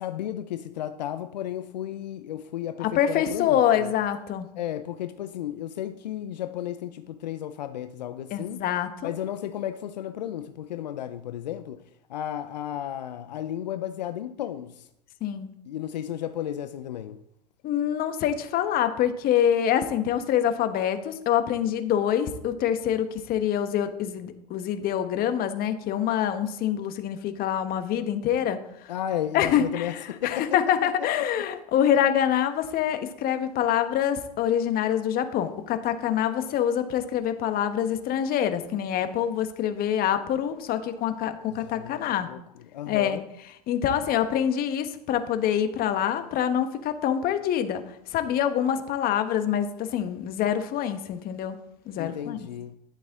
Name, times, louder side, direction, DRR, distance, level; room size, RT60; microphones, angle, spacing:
voice 1, 0.0-3.9 4.6-8.6 9.0-11.8 12.1-14.9 15.6-17.2 28.9-30.6 30.8-31.1 31.3-31.4 41.8-41.9 42.2-42.4 42.7-43.2 52.0-52.7, left 11 dB, 85° left, 0.6 m, -33 dB
voice 2, 2.8-4.5 8.3-9.1 15.2-15.5 17.6-28.9 29.3-42.3 42.9-43.2 43.7-47.8 48.1-51.6 51.9-52.5, left 9 dB, 45° left, 1.2 m, -25 dB
12.0 x 8.0 x 3.6 m
hypercardioid pair, 90°, 21 cm